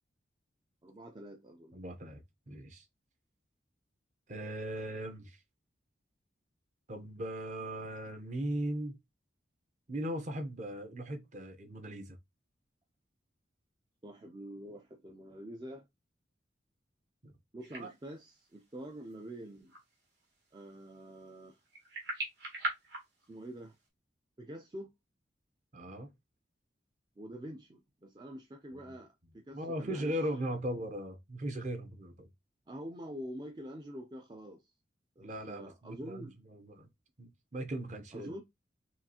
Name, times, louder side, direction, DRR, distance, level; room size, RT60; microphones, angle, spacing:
voice 1, 0.8-1.8 14.0-15.9 17.5-19.7 20.5-21.6 23.3-23.8 24.4-24.9 27.2-30.2 32.7-34.7 35.2-36.3 38.1-38.4, equal, 25° right, 0.4 m, -46 dB
voice 2, 1.7-2.8 4.3-5.4 6.9-9.0 9.9-12.2 17.2-17.3 17.8-17.9 25.7-26.1 28.7-28.9 29.5-32.3 35.2-36.9 37.2-38.3, right 1 dB, 40° right, 0.8 m, -38 dB
sound 1, 17.6-23.9, right 2 dB, 65° right, 1.9 m, -43 dB
5.6 x 2.5 x 2.8 m
head